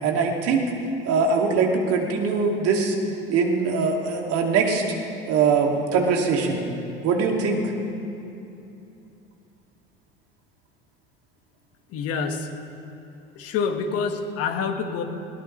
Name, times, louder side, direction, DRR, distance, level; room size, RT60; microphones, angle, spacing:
voice 1, 0.0-0.7 1.0-2.9 3.3-4.8 5.3-6.7 7.0-7.6, right 5 dB, 55° right, 1 dB, 2.6 m, -22 dB
voice 2, 11.9-12.5 13.4-15.0, left 5 dB, 50° left, 6 dB, 1.7 m, -27 dB
21.0 x 18.5 x 3.3 m, 2.8 s
hypercardioid pair, 70°, 29 cm